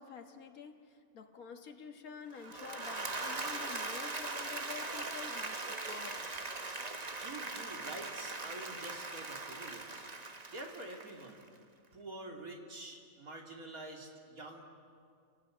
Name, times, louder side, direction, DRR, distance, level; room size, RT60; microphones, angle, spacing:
voice 1, 0.0-6.3, left 6 dB, 90° left, 4 dB, 1.9 m, -49 dB
Applause / Crowd, 2.3-11.5, right 3 dB, 30° right, 1.3 m, -40 dB
voice 2, 7.2-11.5 11.9-14.7, right 2 dB, 90° right, 1 dB, 3.3 m, -47 dB
29.0 x 19.0 x 8.6 m, 2.3 s
omnidirectional pair, 1.5 m